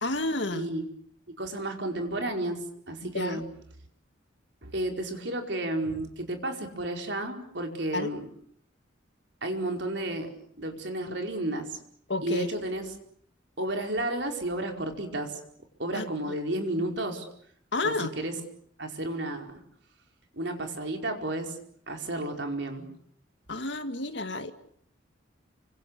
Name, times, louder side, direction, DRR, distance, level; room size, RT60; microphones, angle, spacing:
voice 1, 0.0-0.7 3.0-3.4 7.9-8.1 12.1-12.5 15.9-16.0 17.7-18.1 23.5-24.5, left 2 dB, 65° left, 9 dB, 2.1 m, -30 dB
voice 2, 0.5-0.9 1.4-3.4 4.6-8.3 9.4-10.3 10.6-11.8 12.2-12.9 13.6-15.4 15.8-17.3 17.8-18.4 18.8-19.6 20.4-21.6 21.9-22.9, right 1 dB, 60° right, 4 dB, 4.9 m, -32 dB
29.5 x 25.5 x 6.8 m, 0.63 s
head